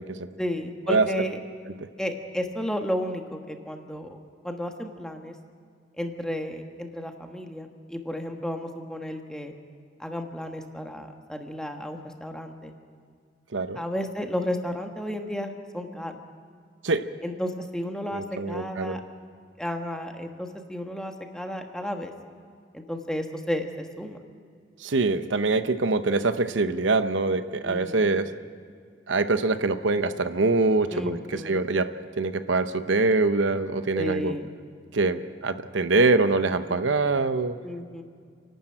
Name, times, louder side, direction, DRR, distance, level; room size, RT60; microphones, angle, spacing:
voice 1, 0.4-1.4 2.0-4.2 4.4-5.3 6.0-9.5 10.0-12.7 13.7-16.1 17.2-19.0 19.6-22.1 22.7-24.2 27.6-28.0 30.9-31.6 33.9-34.5 36.7-36.8 37.6-38.0, equal, 5° left, 4 dB, 1.5 m, -33 dB
voice 2, 18.1-19.0 24.8-28.3 29.1-31.9 32.2-34.3 34.9-37.6, right 3 dB, 85° right, 10 dB, 0.9 m, -24 dB
29.0 x 12.0 x 8.9 m, 2.2 s
head